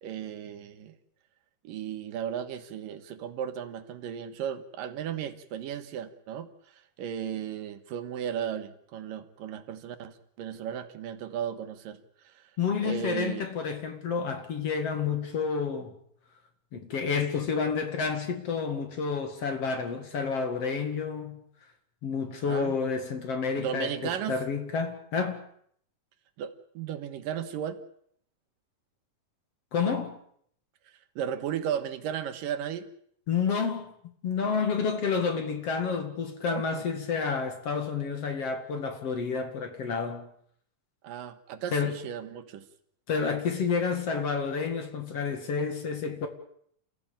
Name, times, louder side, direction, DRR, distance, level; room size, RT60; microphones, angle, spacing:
voice 1, 0.0-0.9 1.6-12.0 12.2-12.4 12.8-13.5 22.5-22.8 23.6-24.4 26.4-27.8 31.2-32.9 36.5-36.8 41.0-42.6, right 9 dB, 85° right, 3.1 m, -35 dB
voice 2, 12.6-16.0 16.7-21.4 22.0-25.4 29.7-30.2 33.3-33.9 34.2-40.3 41.7-42.0 43.1-46.3, left 5 dB, 50° left, 2.9 m, -29 dB
28.5 x 15.0 x 8.8 m
omnidirectional pair, 3.8 m